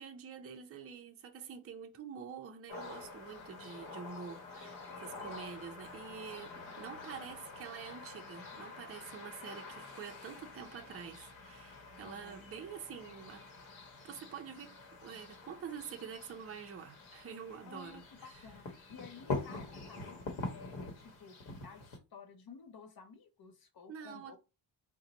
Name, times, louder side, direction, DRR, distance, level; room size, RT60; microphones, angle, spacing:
voice 1, 0.0-13.4 14.0-18.4 23.9-24.4, right 7 dB, 30° right, 0.5 m, -47 dB
sound 1, 2.7-22.0, left 3 dB, 85° left, 1.0 m, -46 dB
voice 2, 5.2-5.5 12.0-12.5 17.7-24.4, left 5 dB, 55° left, 0.7 m, -54 dB
3.9 x 2.2 x 2.8 m
wide cardioid pair, 145°, 45 cm